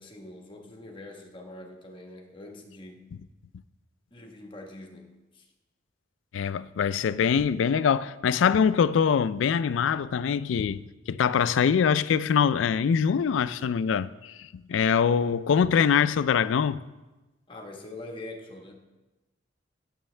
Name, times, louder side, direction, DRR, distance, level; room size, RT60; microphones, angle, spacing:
voice 1, 0.0-3.1 4.1-5.4 17.5-18.7, left 2 dB, 30° left, 1.2 m, -44 dB
voice 2, 6.3-16.8, left 7 dB, 80° left, 0.3 m, -24 dB
14.5 x 7.2 x 3.3 m
head